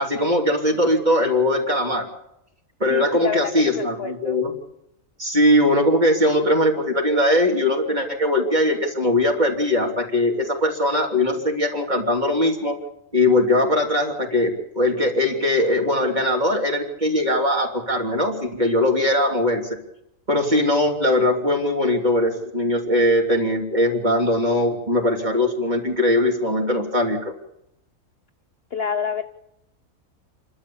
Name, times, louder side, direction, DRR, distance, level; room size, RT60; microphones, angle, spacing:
voice 1, 0.0-2.1 2.8-4.5 5.2-12.8 13.1-19.6 20.3-27.3, left 1 dB, 30° right, 1 dB, 3.4 m, -20 dB
voice 2, 2.9-4.4 28.7-29.2, left 6 dB, 50° left, 7 dB, 1.1 m, -28 dB
27.5 x 12.5 x 8.7 m, 0.83 s
omnidirectional pair, 1.5 m